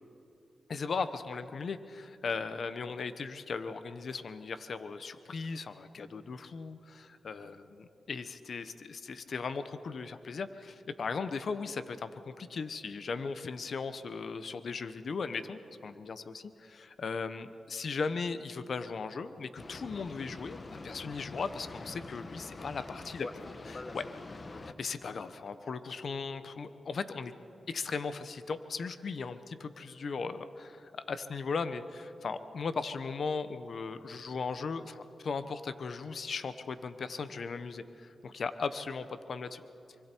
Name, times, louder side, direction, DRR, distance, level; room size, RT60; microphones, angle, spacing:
voice 1, 0.7-24.1 24.8-27.3 27.7-39.6, left 4 dB, 65° left, 11 dB, 1.0 m, -37 dB
Boat Water vehicle, 19.6-24.7, left 2 dB, 45° left, 1.3 m, -45 dB
25.5 x 24.5 x 4.6 m, 2.7 s
cardioid pair, 55°, 0 cm